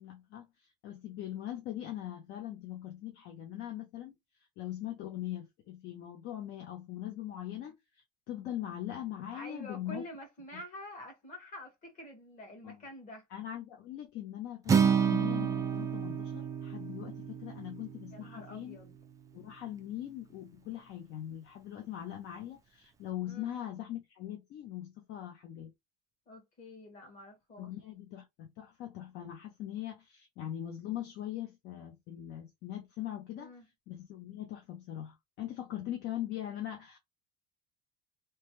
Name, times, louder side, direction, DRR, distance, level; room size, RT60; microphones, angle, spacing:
voice 1, 0.0-4.1 4.6-10.0 10.5-10.6 12.6-12.8 13.3-18.8 19.3-25.7 27.6-33.6 33.9-37.0, left 12 dB, 55° left, 0.7 m, -41 dB
voice 2, 9.3-13.3 18.1-18.9 23.2-23.6 26.3-27.7 33.4-33.6, left 1 dB, 40° left, 1.4 m, -47 dB
Acoustic guitar, 14.7-18.9, right 7 dB, 15° right, 0.3 m, -30 dB
3.1 x 2.1 x 3.0 m
cardioid pair, 160°, 21 cm